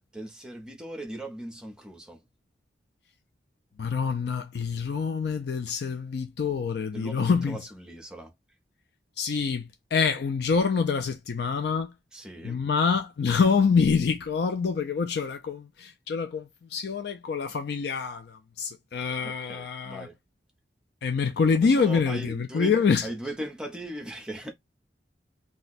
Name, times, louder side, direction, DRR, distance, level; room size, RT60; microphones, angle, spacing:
voice 1, 0.0-2.2 6.9-8.3 12.1-12.6 19.2-20.2 21.5-22.8 23.0-24.5, right 1 dB, 5° right, 0.6 m, -38 dB
voice 2, 3.8-7.6 9.2-11.9 12.4-20.1 21.0-23.1, left 5 dB, 60° left, 0.4 m, -26 dB
2.6 x 2.1 x 3.9 m
head